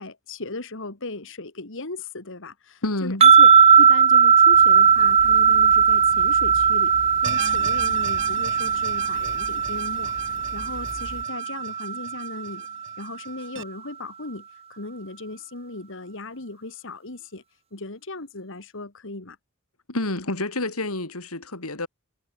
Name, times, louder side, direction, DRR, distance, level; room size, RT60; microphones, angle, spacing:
voice 1, 0.0-3.5 3.8-10.1 10.5-12.7 13.0-17.4 17.7-19.4, left 2 dB, 65° left, 2.5 m, -37 dB
voice 2, 2.8-3.2 19.9-21.9, left 2 dB, 90° left, 4.0 m, -28 dB
sound 1, 3.2-12.5, right 7 dB, 30° right, 0.4 m, -18 dB
sound 2, 4.5-11.2, left 1 dB, 40° left, 2.0 m, -42 dB
sound 3, 7.2-13.6, right 7 dB, 60° right, 5.8 m, -39 dB
head